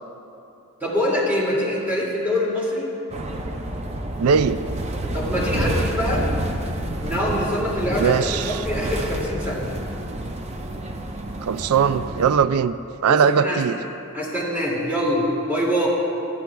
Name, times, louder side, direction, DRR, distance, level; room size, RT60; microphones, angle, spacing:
voice 1, 0.8-2.9 5.1-6.2 7.0-9.6 13.1-13.6 14.1-15.9, left 1 dB, 10° right, -6 dB, 2.4 m, -24 dB
sound 1, 3.1-12.4, right 1 dB, 30° right, 0.6 m, -28 dB
voice 2, 4.2-4.6 8.0-8.6 11.4-12.8 13.0-13.8, right 6 dB, 80° right, 14 dB, 0.4 m, -20 dB
19.5 x 12.5 x 2.3 m, 2.8 s
head